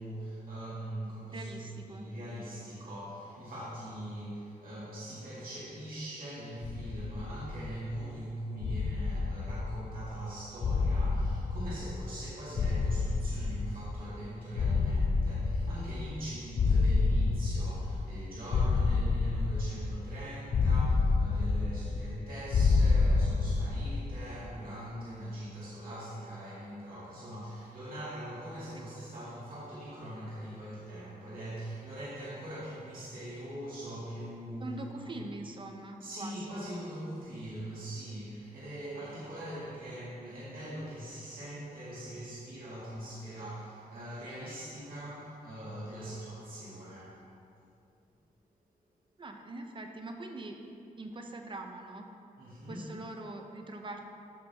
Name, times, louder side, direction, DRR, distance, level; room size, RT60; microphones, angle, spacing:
voice 1, 0.0-34.7 34.9-35.2 36.0-47.2 52.4-52.9, right 1 dB, 70° right, -10 dB, 2.1 m, -42 dB
voice 2, 1.3-2.1 28.7-28.8 34.6-36.6 49.2-50.6 51.0-52.1 52.7-54.0, right 2 dB, 35° right, 4 dB, 0.7 m, -43 dB
sound 1, 6.6-8.0 8.6-10.2 10.6-12.2 12.6-14.1 14.6-16.2 16.6-18.2 18.5-20.1 20.5-22.2 22.5-24.1, left 4 dB, 45° left, 0.5 m, -28 dB
13.0 x 6.0 x 3.5 m, 2.5 s
wide cardioid pair, 180°, 15 cm